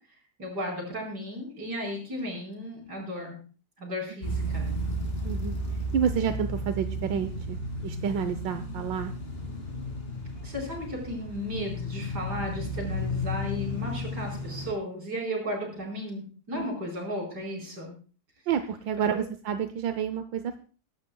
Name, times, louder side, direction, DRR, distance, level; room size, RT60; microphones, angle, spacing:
voice 1, 0.4-3.3 3.8-4.7 10.4-17.9, equal, 60° right, 0 dB, 5.4 m, -34 dB
sound 1, 4.2-14.7, equal, 30° left, 2.4 m, -33 dB
voice 2, 5.2-5.5 5.9-9.1 16.5-16.7 18.5-20.6, right 8 dB, 80° right, 9 dB, 1.5 m, -29 dB
22.0 x 12.0 x 2.3 m, 0.38 s
omnidirectional pair, 2.0 m